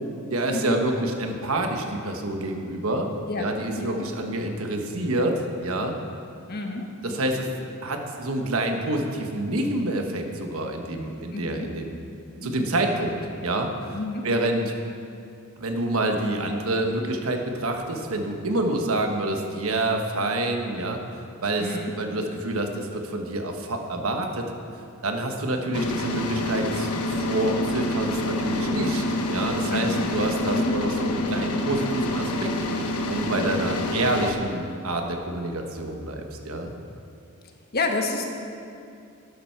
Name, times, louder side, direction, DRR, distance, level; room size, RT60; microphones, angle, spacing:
voice 1, 0.3-3.1 3.4-5.9 7.0-7.5 7.8-11.9 12.4-14.0 14.2-14.7 15.6-21.0 21.4-24.5 25.0-29.0 29.3-32.5 33.1-36.7, right 1 dB, 70° right, 3 dB, 1.3 m, -27 dB
voice 2, 6.5-6.9 11.3-11.7 12.4-12.7 13.9-14.3 21.6-21.9 29.7-30.0 30.5-30.7 37.7-38.3, left 2 dB, 45° left, 3 dB, 1.3 m, -29 dB
sound 1, 25.7-34.3, left 1 dB, 90° left, 1.1 m, -27 dB
12.0 x 11.5 x 4.6 m, 2.5 s
head